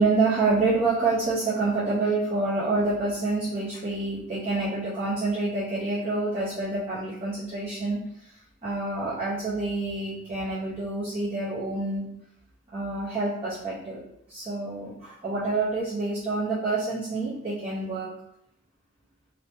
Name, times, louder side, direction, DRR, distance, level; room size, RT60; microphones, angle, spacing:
voice 1, 0.0-8.3 8.6-12.1 12.7-14.0 14.3-18.1, right 3 dB, 30° right, -9 dB, 0.6 m, -27 dB
2.9 x 2.1 x 3.3 m, 0.77 s
head